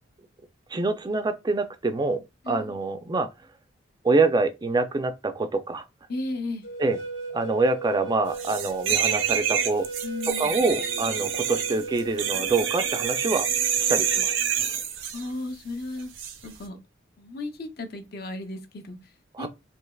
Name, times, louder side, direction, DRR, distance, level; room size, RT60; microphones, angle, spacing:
voice 1, 0.7-3.3 4.0-5.8 6.8-7.0 7.3-9.9 10.4-13.5 13.8-14.3 19.3-19.5, right 3 dB, 20° right, 0.3 m, -25 dB
voice 2, 2.4-2.8 6.1-6.6 10.0-10.6 15.1-16.1 16.4-16.8 17.2-19.5, left 2 dB, 55° left, 0.5 m, -35 dB
sound 1, 6.6-14.4, right 3 dB, 80° left, 0.9 m, -37 dB
sound 2, 8.4-15.2 16.2-16.4, right 8 dB, 75° right, 0.6 m, -27 dB
3.2 x 2.8 x 2.3 m
head